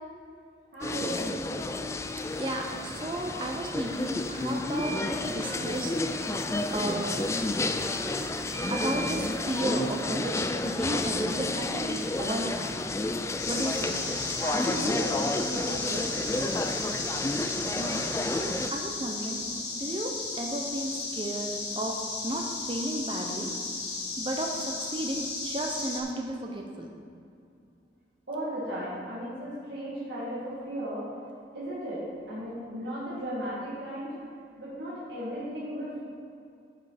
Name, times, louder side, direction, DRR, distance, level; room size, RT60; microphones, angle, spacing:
voice 1, 0.7-1.3 1.7-1.9 14.4-16.8 28.3-31.0 31.5-34.1 34.6-36.0, equal, 70° right, -10 dB, 2.3 m, -36 dB
sound 1, 0.8-18.7, left 2 dB, 15° left, 0.3 m, -31 dB
voice 2, 2.4-6.2 6.7-7.1 8.7-12.7 13.5-13.9 17.8-18.0 18.3-19.4 19.7-22.0 22.2-23.5 24.2-26.9, right 1 dB, 30° right, 1 dB, 0.7 m, -33 dB
sound 2, 13.4-26.0, left 3 dB, 70° left, 1.6 m, -35 dB
10.5 x 7.0 x 4.2 m, 2.5 s
head